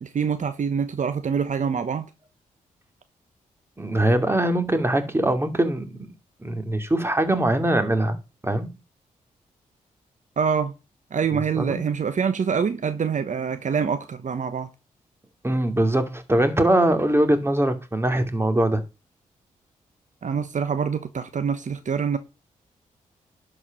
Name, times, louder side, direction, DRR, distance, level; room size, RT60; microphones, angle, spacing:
voice 1, 0.0-2.1 10.4-10.7 11.1-14.7 20.2-22.2, right 6 dB, 60° right, 1.1 m, -25 dB
voice 2, 3.8-6.1 6.4-8.2 8.4-8.7 11.5-11.8 15.4-18.8, right 1 dB, 15° right, 2.5 m, -22 dB
11.5 x 4.9 x 6.0 m
supercardioid pair, 50°, 15 cm